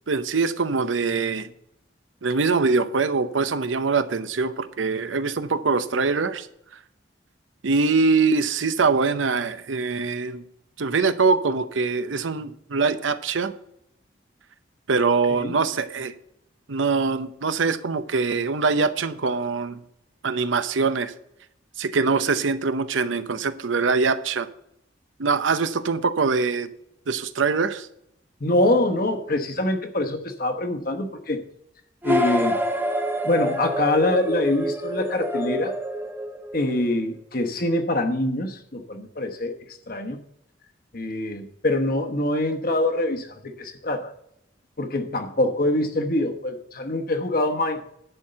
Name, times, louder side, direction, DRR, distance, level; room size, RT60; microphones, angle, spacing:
voice 1, 0.1-1.5 2.2-6.5 7.6-10.5 10.8-13.5 14.9-16.1 16.7-19.8 20.2-21.1 21.8-24.5 25.2-26.7 27.1-27.9, right 4 dB, 90° right, 12 dB, 0.7 m, -23 dB
voice 2, 28.4-31.4 32.0-32.6 33.2-35.7 36.5-39.5 39.9-40.2 40.9-44.1 44.8-47.8, left 1 dB, 50° left, 5 dB, 1.1 m, -24 dB
sound 1, 32.0-36.9, equal, 10° right, 0.6 m, -27 dB
11.0 x 4.5 x 7.8 m, 0.76 s
head